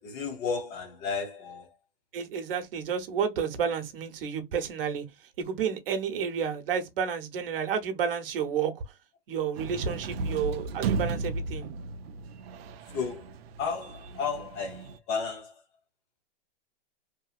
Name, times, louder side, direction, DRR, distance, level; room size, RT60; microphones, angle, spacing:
voice 1, 0.0-1.8 9.9-10.2 12.9-15.6, left 5 dB, 25° left, 0.5 m, -34 dB
voice 2, 2.1-5.0 5.4-8.8 9.3-11.7, right 7 dB, 70° right, 0.9 m, -30 dB
sound 1, 9.5-15.0, right 4 dB, 85° right, 0.5 m, -35 dB
2.8 x 2.6 x 2.3 m
supercardioid pair, 160°, 30 cm